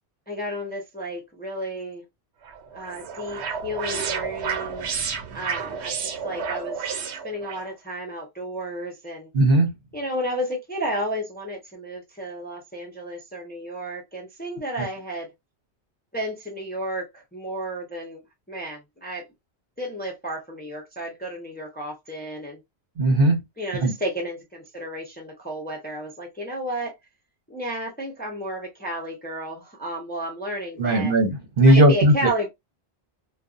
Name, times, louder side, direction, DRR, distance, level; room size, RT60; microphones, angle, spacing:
voice 1, 0.3-2.0 2.7-4.9 5.3-6.9 7.2-9.3 9.9-15.3 16.1-18.2 18.5-19.2 19.8-22.6 23.6-26.9 27.5-31.1 31.6-32.5, equal, 10° left, 0.6 m, -32 dB
sound 1, 2.4-7.6, right 6 dB, 80° right, 0.8 m, -31 dB
voice 2, 9.3-9.7 14.8-14.9 23.0-23.4 23.8-23.9 30.7-32.5, right 1 dB, 55° right, 1.1 m, -18 dB
2.5 x 2.3 x 2.4 m
omnidirectional pair, 1.1 m